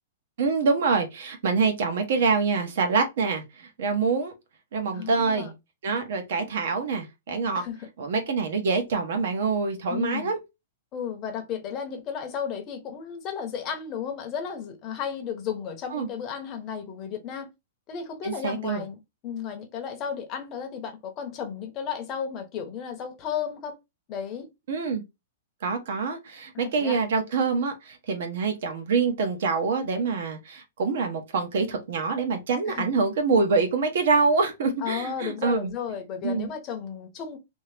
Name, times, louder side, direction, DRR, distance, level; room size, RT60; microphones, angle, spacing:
voice 1, 0.4-3.4 3.8-4.3 4.7-5.5 5.8-7.6 8.0-10.4 15.9-16.1 18.2-18.8 24.7-25.0 25.6-35.7 36.2-36.5, right 4 dB, 60° right, 0.9 m, -25 dB
voice 2, 4.9-5.5 7.5-7.9 9.9-10.3 10.9-17.5 17.9-23.7 24.1-24.5 26.5-27.0 32.7-32.9 34.8-37.4, left 7 dB, 25° left, 0.8 m, -34 dB
2.8 x 2.8 x 3.3 m
hypercardioid pair, 165°, 0 cm